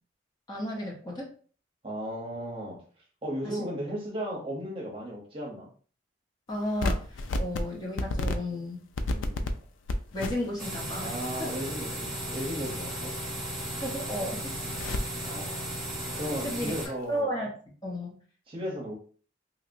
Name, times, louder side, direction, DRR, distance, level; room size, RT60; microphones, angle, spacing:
voice 1, 0.5-1.3 3.4-3.7 6.5-8.8 10.1-11.1 11.4-11.5 13.8-14.5 16.4-16.8 17.1-17.5 17.8-18.1, equal, 20° left, -3 dB, 0.8 m, -33 dB
voice 2, 1.8-2.8 3.2-5.7 9.1-9.4 11.0-13.1 15.2-15.8 16.1-17.3 18.5-19.0, equal, 30° right, -2 dB, 0.9 m, -35 dB
sound 1, 6.7-7.6 8.0-8.4 8.9-9.5 9.8-10.8 11.1-11.2 12.0-13.2 13.5-13.6 13.9-15.0 16.2-16.6, left 2 dB, 80° left, 0.4 m, -32 dB
sound 2, 10.6-16.9, equal, ahead, 1.3 m, -35 dB
3.0 x 2.7 x 2.6 m, 0.42 s
head